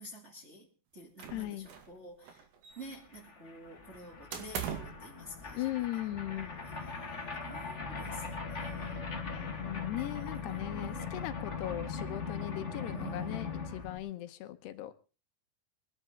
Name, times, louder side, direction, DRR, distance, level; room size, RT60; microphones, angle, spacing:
voice 1, 0.0-2.5 2.8-9.1 10.0-11.3 12.9-13.7, right 1 dB, 20° right, 2.0 m, -50 dB
sound 1, 1.2-2.0 2.2-3.2 4.3-5.1, right 8 dB, 65° right, 3.9 m, -40 dB
voice 2, 1.3-1.7 5.5-6.7 9.3-14.9, left 14 dB, 80° left, 2.9 m, -38 dB
sound 2, 2.8-2.9 3.1-14.0, left 5 dB, 30° left, 1.3 m, -40 dB
23.0 x 11.5 x 3.7 m
omnidirectional pair, 4.9 m